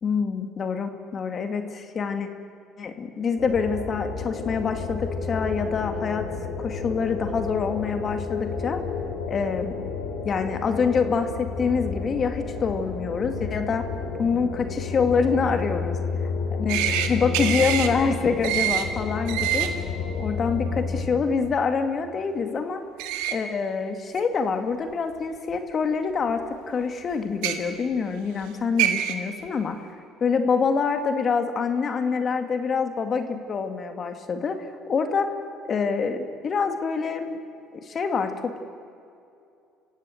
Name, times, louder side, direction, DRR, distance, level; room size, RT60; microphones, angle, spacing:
voice 1, 0.0-2.3 2.8-6.3 6.6-8.8 9.3-9.8 10.2-13.9 14.2-15.9 16.6-16.8 17.1-19.7 20.2-22.8 23.3-29.8 30.2-34.6 34.9-35.3 35.7-37.4 37.7-38.6, left 5 dB, 45° left, 7 dB, 2.1 m, -26 dB
sound 1, 3.4-21.0, left 5 dB, 85° left, 3.2 m, -31 dB
sound 2, 16.7-17.1 17.3-17.9 18.4-18.8 19.3-19.7 23.0-23.3 24.2-24.3 25.5-25.6 27.3-27.5 28.4-28.5 28.8-29.1, right 11 dB, 80° right, 1.7 m, -24 dB
26.0 x 16.5 x 7.9 m, 2.5 s
supercardioid pair, 75°, 0 cm